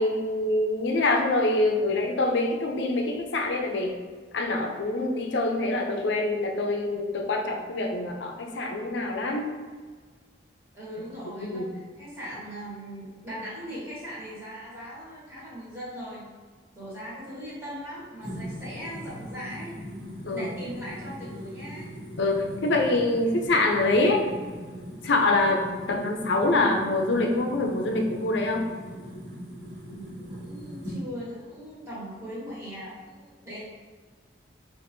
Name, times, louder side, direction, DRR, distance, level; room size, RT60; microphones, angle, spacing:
voice 1, 0.0-3.9 4.3-9.5 11.5-11.7 20.3-20.5 22.2-24.2 25.0-28.6, left 2 dB, 75° left, 2 dB, 0.5 m, -25 dB
voice 2, 10.7-16.2 16.7-19.7 20.2-21.9 29.9-33.6, equal, 15° right, -10 dB, 1.4 m, -39 dB
sound 1, 18.2-31.0, equal, 60° right, 1.3 m, -40 dB
4.3 x 2.5 x 2.6 m, 1.5 s
head